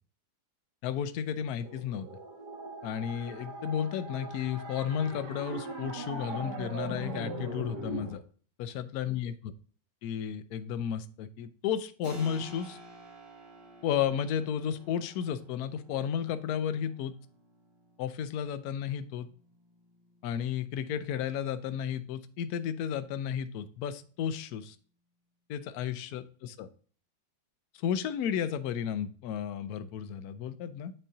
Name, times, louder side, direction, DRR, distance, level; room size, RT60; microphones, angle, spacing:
voice 1, 0.8-2.1 2.8-8.2 8.6-9.3 10.0-12.8 13.8-17.1 18.0-19.3 20.2-24.8 25.5-26.7 27.8-30.9, left 8 dB, 70° left, 12 dB, 1.0 m, -33 dB
sound 1, 1.6-8.1, right 2 dB, 65° right, 2.3 m, -40 dB
Keyboard (musical), 12.0-22.4, right 1 dB, 45° right, 2.5 m, -53 dB
9.2 x 4.4 x 2.6 m, 0.42 s
omnidirectional pair, 2.0 m